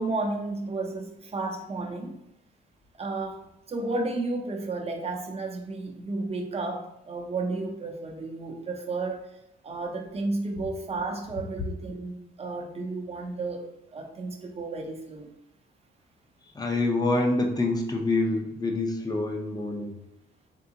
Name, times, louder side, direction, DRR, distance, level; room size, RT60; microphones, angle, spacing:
voice 1, 0.0-2.1 3.0-9.3 9.6-13.7 13.9-15.3, right 3 dB, 30° right, 3 dB, 0.7 m, -32 dB
voice 2, 16.5-19.9, left 2 dB, 20° left, 3 dB, 0.7 m, -26 dB
3.7 x 3.5 x 2.8 m, 0.84 s
cardioid pair, 90°, 20 cm